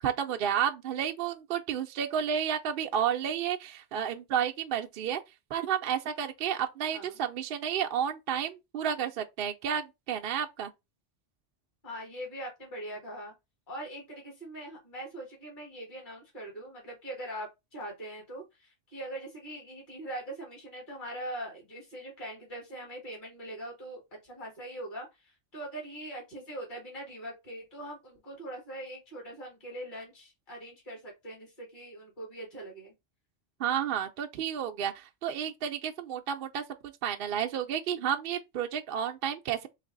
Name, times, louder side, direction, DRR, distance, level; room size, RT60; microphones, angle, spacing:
voice 1, 0.0-5.2 5.5-10.7 33.6-36.6 37.0-39.7, right 8 dB, 60° right, 0.6 m, -31 dB
voice 2, 6.9-7.2 11.8-13.3 13.7-32.9, right 1 dB, 40° left, 1.9 m, -42 dB
3.3 x 3.2 x 3.8 m
omnidirectional pair, 1.2 m